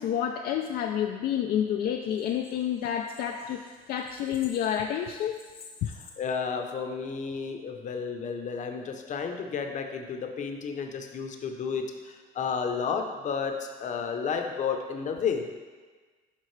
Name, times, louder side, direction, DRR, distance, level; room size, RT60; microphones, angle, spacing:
voice 1, 0.0-5.4 5.8-5.9, left 9 dB, 65° left, 3 dB, 0.4 m, -29 dB
voice 2, 6.2-15.5, left 6 dB, 45° left, 4 dB, 0.8 m, -32 dB
11.0 x 3.7 x 3.2 m, 1.4 s
cardioid pair, 110°, 17 cm